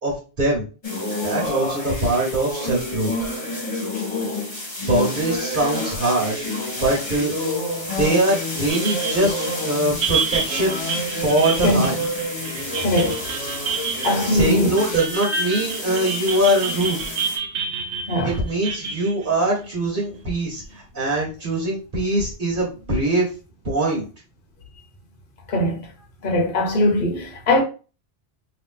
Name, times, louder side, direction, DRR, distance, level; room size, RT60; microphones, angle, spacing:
voice 1, 0.0-0.6 1.2-3.1 4.8-7.3 8.0-12.0 14.2-17.0 18.2-23.3 23.6-24.0, right 1 dB, 50° right, 1.5 m, -22 dB
sound 1, 0.8-17.4, left 1 dB, 30° left, 1.3 m, -29 dB
sound 2, 8.7-20.4, right 5 dB, 80° right, 1.0 m, -29 dB
voice 2, 12.8-13.2 14.0-14.7 18.1-18.4 25.5-25.9 26.2-27.6, left 1 dB, 50° left, 1.0 m, -20 dB
2.9 x 2.8 x 3.7 m
omnidirectional pair, 1.2 m